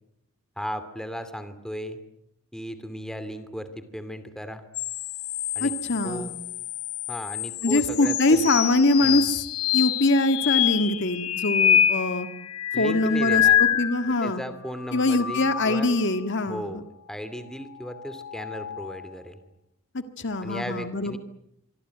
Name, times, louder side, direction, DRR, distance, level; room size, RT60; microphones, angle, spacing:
voice 1, 0.6-2.0 2.5-4.6 5.5-5.7 6.0-6.4 7.1-8.5 9.0-9.3 12.7-13.6 14.2-15.9 16.5-19.4 20.4-21.2, equal, 5° left, 11 dB, 2.5 m, -36 dB
sound 1, 4.7-14.3 14.8-16.1 17.9-19.1, left 10 dB, 90° left, 1.3 m, -26 dB
voice 2, 5.6-6.3 7.6-9.5 9.7-12.3 12.8-14.4 14.9-16.6 19.9-21.2, left 2 dB, 55° left, 9 dB, 1.7 m, -23 dB
25.0 x 24.5 x 9.3 m, 0.80 s
head